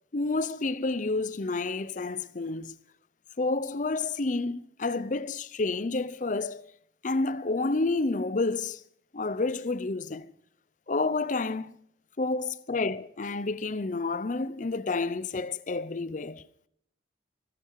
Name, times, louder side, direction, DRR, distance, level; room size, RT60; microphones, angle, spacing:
voice 1, 0.1-2.7 3.4-6.7 7.0-8.8 9.1-10.3 10.9-11.8 12.2-16.4, left 3 dB, 45° left, 0.7 m, -29 dB
17.0 x 14.5 x 4.7 m
head